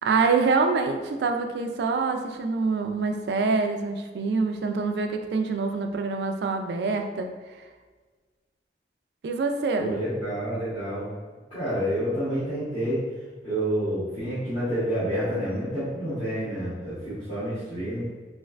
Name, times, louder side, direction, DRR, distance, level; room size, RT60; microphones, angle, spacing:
voice 1, 0.0-7.3 7.6-7.7 9.2-9.9, right 4 dB, 70° right, 5 dB, 0.3 m, -25 dB
voice 2, 9.8-11.1 11.5-13.0 13.4-18.1, equal, 30° left, -15 dB, 1.1 m, -28 dB
3.2 x 3.1 x 2.4 m, 1.4 s
head